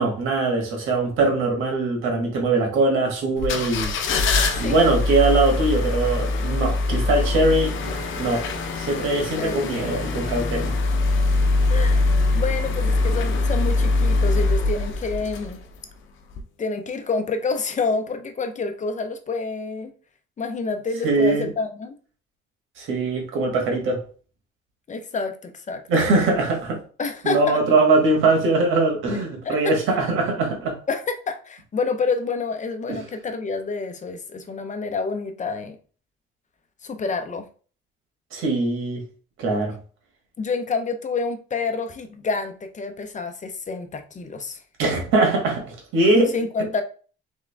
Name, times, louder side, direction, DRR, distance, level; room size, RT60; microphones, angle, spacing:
voice 1, 0.0-3.9 4.6-8.4 8.7-10.7 21.0-21.5 22.8-24.0 25.9-26.8 27.2-30.8 32.9-33.1 38.3-39.0 39.4-39.8 44.8-46.3, right 2 dB, 90° right, 1.6 m, -21 dB
sound 1, 3.4-15.8 16.3-16.4, left 2 dB, 75° left, 0.8 m, -23 dB
voice 2, 9.4-9.7 11.7-12.1 12.3-15.6 16.6-19.9 20.4-22.0 24.9-25.8 27.0-27.6 29.4-29.6 30.9-35.8 36.8-37.5 40.4-44.6 46.3-46.8, left 4 dB, 40° left, 0.8 m, -28 dB
3.6 x 3.5 x 3.4 m
cardioid pair, 90°, 20 cm